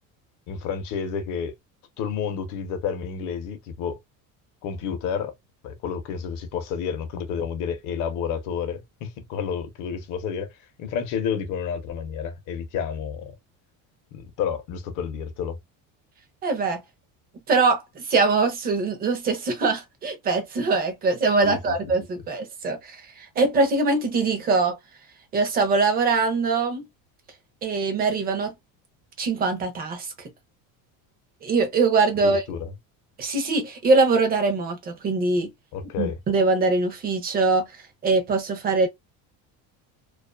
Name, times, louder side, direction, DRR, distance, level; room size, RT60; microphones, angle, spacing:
voice 1, 0.5-1.5 2.0-4.0 4.6-5.3 5.6-10.5 10.8-13.3 14.1-15.6 21.4-21.9 32.2-32.7 35.7-36.2, left 7 dB, 50° left, 0.6 m, -30 dB
voice 2, 16.4-16.8 17.5-24.8 25.3-26.9 27.6-28.5 29.2-30.3 31.4-32.4 33.2-35.5 36.0-38.9, right 3 dB, 25° right, 0.4 m, -23 dB
2.4 x 2.4 x 2.2 m
cardioid pair, 175°, 40 cm